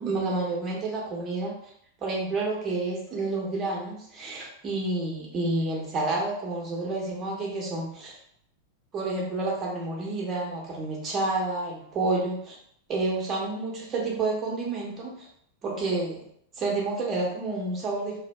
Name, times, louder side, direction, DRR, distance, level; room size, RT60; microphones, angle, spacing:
voice 1, 0.0-1.5 2.0-8.1 8.9-12.6 12.9-15.3 15.6-16.2 16.6-18.2, right 2 dB, 25° right, -3 dB, 0.8 m, -29 dB
2.6 x 2.2 x 2.2 m, 0.69 s
figure-of-eight pair, 90°, 0 cm